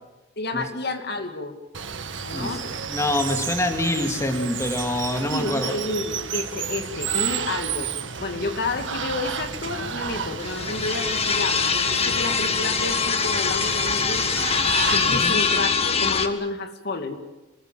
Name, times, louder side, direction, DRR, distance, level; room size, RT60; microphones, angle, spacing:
voice 1, 0.4-1.5 2.2-2.6 5.3-7.9 8.2-14.5 14.9-17.1, left 2 dB, 60° left, 5 dB, 2.4 m, -30 dB
Water, 1.7-15.3, right 6 dB, 90° right, 1.8 m, -32 dB
voice 2, 2.9-5.7 15.0-15.4, left 1 dB, 15° left, 5 dB, 2.3 m, -25 dB
sound 1, 10.4-16.3, left 5 dB, 35° left, 1.6 m, -23 dB
27.0 x 20.5 x 7.5 m, 1.0 s
head